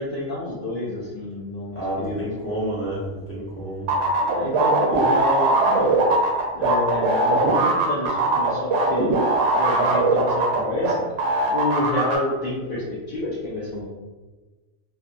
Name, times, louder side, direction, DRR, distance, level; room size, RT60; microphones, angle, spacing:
voice 1, 0.0-2.2 4.2-6.1 6.5-9.1 9.5-11.1 11.5-13.9, left 2 dB, 55° left, -8 dB, 0.6 m, -29 dB
voice 2, 1.7-3.9, right 1 dB, 15° left, -8 dB, 0.7 m, -29 dB
sound 1, 3.9-10.9 11.2-12.2, right 3 dB, 75° right, 0.9 m, -20 dB
2.5 x 2.5 x 2.2 m, 1.2 s
omnidirectional pair, 1.3 m